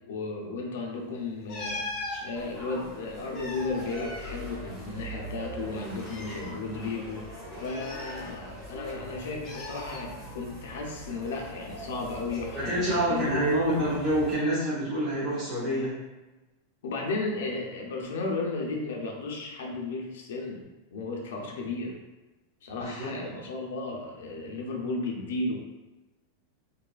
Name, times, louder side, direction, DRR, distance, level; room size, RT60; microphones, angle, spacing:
voice 1, 0.1-1.8 2.2-13.4 16.8-20.6 20.9-22.0 22.6-25.6, left 3 dB, 85° left, 0 dB, 0.5 m, -34 dB
sound 1, 1.5-2.2 3.1-4.8 5.1-5.2 6.0-6.5 7.6-8.7 9.4-10.0 11.2-11.5, left 2 dB, 30° left, 0.7 m, -39 dB
sound 2, 2.3-14.4, right 1 dB, 5° left, 0.8 m, -42 dB
voice 2, 12.5-15.9 22.7-23.1, right 1 dB, 25° right, -10 dB, 0.7 m, -27 dB
2.6 x 2.3 x 2.3 m, 1.1 s
supercardioid pair, 170°, 0 cm